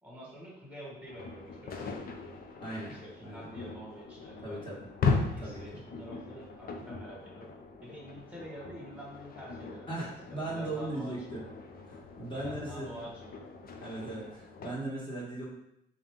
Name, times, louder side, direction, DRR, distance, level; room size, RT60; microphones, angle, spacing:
voice 1, 0.0-2.2 2.9-4.9 5.3-7.5 7.8-11.1 12.2-13.3, equal, 5° right, -5 dB, 1.5 m, -47 dB
sound 1, 1.1-14.7, left 4 dB, 50° left, 0.5 m, -38 dB
voice 2, 2.6-3.0 3.2-3.4 4.4-4.8 5.4-5.6 9.9-11.4 11.9-13.0 13.8-15.5, right 2 dB, 25° left, -6 dB, 1.3 m, -38 dB
3.8 x 2.7 x 3.6 m, 0.81 s
cardioid pair, 90°, 20 cm